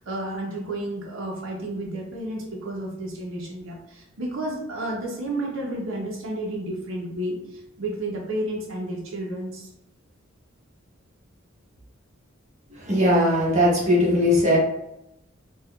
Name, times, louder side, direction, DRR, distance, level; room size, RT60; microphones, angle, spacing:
voice 1, 0.0-9.7, right 1 dB, 90° right, -1 dB, 0.7 m, -31 dB
voice 2, 12.8-14.6, equal, 35° right, -5 dB, 0.9 m, -19 dB
3.5 x 2.3 x 2.2 m, 0.88 s
head